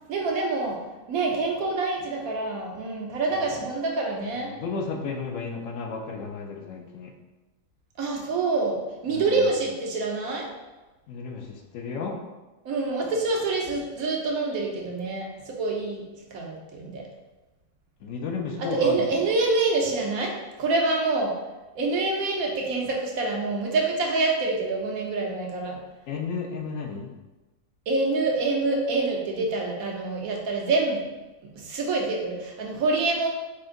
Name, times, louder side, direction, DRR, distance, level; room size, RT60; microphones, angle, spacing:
voice 1, 0.1-0.8 1.1-4.5 8.0-8.8 9.0-10.5 12.6-16.0 16.3-17.0 18.6-20.3 20.6-21.3 21.7-25.8 27.9-31.0 31.6-33.3, right 3 dB, 85° right, 0 dB, 1.2 m, -26 dB
voice 2, 4.4-7.1 9.1-9.4 11.1-12.2 18.0-19.0 26.1-27.1, left 4 dB, 75° left, 3 dB, 0.9 m, -33 dB
4.3 x 2.5 x 3.7 m, 1.1 s
omnidirectional pair, 1.5 m